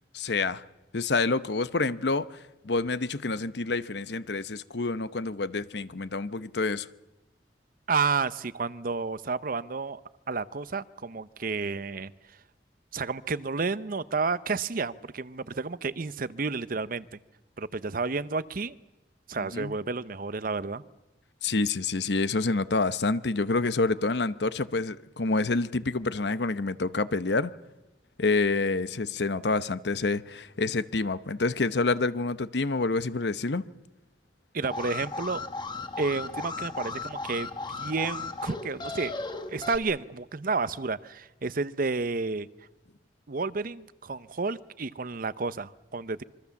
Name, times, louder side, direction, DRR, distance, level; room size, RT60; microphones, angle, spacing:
voice 1, 0.1-0.6 0.9-6.9 19.4-19.8 21.4-27.5 28.2-33.6, left 3 dB, 75° left, 0.9 m, -28 dB
voice 2, 7.9-10.0 10.3-12.1 12.9-17.1 17.6-18.8 19.3-20.8 34.5-35.4 36.0-39.1 39.5-42.5 43.3-46.2, right 4 dB, 55° right, 0.8 m, -31 dB
Alarm, 34.6-39.8, left 3 dB, 25° left, 1.7 m, -36 dB
26.5 x 24.0 x 7.2 m
head